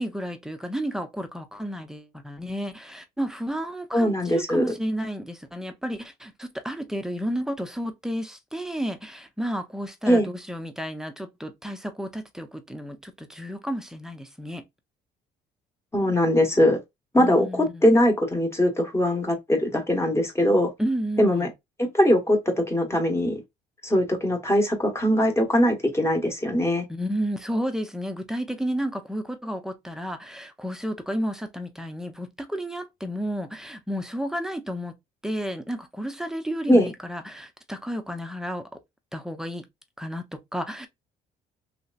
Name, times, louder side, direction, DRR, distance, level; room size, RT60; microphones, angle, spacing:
voice 1, 0.0-14.6 17.2-17.8 20.8-21.5 26.9-35.0 35.2-38.7 39.1-39.7 40.0-40.9, equal, 5° right, 0.6 m, -32 dB
voice 2, 3.9-4.6 10.1-10.3 15.9-16.8 17.1-20.7 21.2-21.5 21.8-23.4 23.8-26.8 36.7-36.9, equal, 15° left, 1.1 m, -21 dB
3.1 x 2.8 x 2.4 m
cardioid pair, 110°, 17 cm